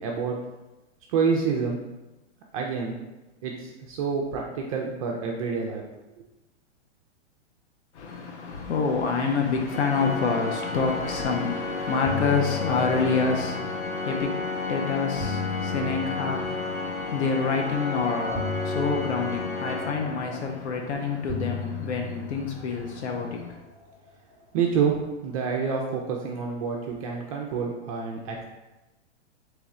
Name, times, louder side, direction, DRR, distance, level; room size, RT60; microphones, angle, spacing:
voice 1, 0.0-0.4 1.1-1.8 2.5-3.0 3.4-5.8 24.5-24.9 25.2-28.4, right 6 dB, 30° right, 0.4 m, -27 dB
voice 2, 8.0-23.5, left 5 dB, 70° left, 0.7 m, -27 dB
Organ, 9.7-20.6, left 3 dB, 35° left, 0.8 m, -32 dB
sound 1, 12.0-14.2 14.9-17.3 18.3-20.8 21.3-23.9, left 4 dB, 10° left, 1.0 m, -37 dB
3.2 x 3.0 x 3.6 m
hypercardioid pair, 130°, 35 cm